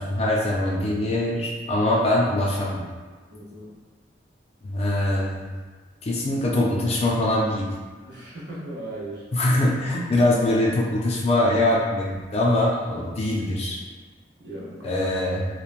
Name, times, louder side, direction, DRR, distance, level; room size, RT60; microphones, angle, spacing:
voice 1, 0.0-2.8 4.6-5.5 6.0-7.7 9.3-13.8 14.8-15.5, left 1 dB, 35° left, -3 dB, 0.4 m, -23 dB
voice 2, 3.3-3.7 8.0-9.2 14.4-14.9, right 1 dB, 80° right, -6 dB, 0.8 m, -37 dB
3.0 x 2.1 x 2.4 m, 1.4 s
head